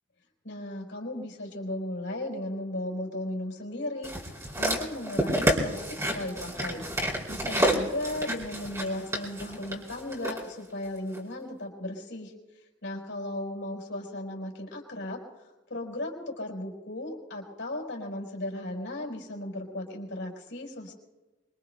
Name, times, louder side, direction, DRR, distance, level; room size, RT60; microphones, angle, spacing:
voice 1, 0.4-6.8 7.3-12.3 12.8-15.2 15.7-20.9, left 1 dB, 70° left, 2 dB, 4.4 m, -36 dB
sound 1, 4.0-10.4 11.1-11.2, right 1 dB, 15° right, 3.8 m, -29 dB
25.5 x 25.0 x 2.2 m, 1.2 s
head